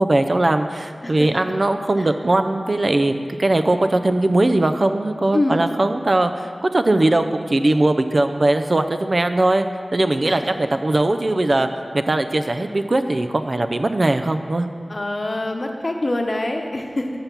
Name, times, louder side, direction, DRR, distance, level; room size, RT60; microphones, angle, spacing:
voice 1, 0.0-9.7 9.9-11.7 11.9-14.7, right 2 dB, 50° right, 8 dB, 0.4 m, -20 dB
voice 2, 1.0-1.6 2.0-2.1 5.3-5.7 10.2-10.4 14.9-17.1, left 1 dB, 45° left, 3 dB, 0.9 m, -25 dB
8.0 x 5.7 x 6.8 m, 2.1 s
wide cardioid pair, 60°, 0 cm